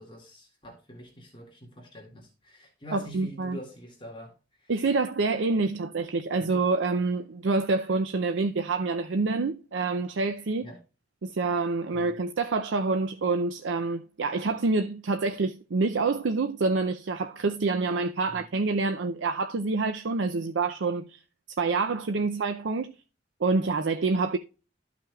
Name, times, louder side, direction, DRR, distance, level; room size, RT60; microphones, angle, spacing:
voice 1, 0.0-4.3 4.6-4.7 6.4-6.5 10.6-10.8 11.9-12.1 18.3-18.4, equal, 30° left, 2.1 m, -45 dB
voice 2, 2.9-3.6 4.7-10.7 11.2-21.2 21.6-22.9 23.4-24.4, right 3 dB, 85° right, 0.5 m, -27 dB
13.5 x 5.9 x 2.3 m
head